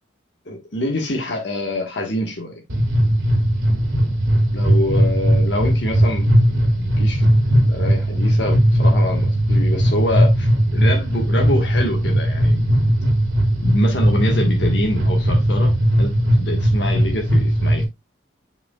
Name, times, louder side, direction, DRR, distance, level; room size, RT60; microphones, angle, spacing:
voice 1, 0.4-2.6 4.5-7.3 7.6-12.7 13.6-17.8, left 1 dB, 60° left, 1.4 m, -26 dB
sound 1, 2.7-17.8, equal, 85° right, 2.3 m, -18 dB
7.2 x 5.8 x 2.2 m
head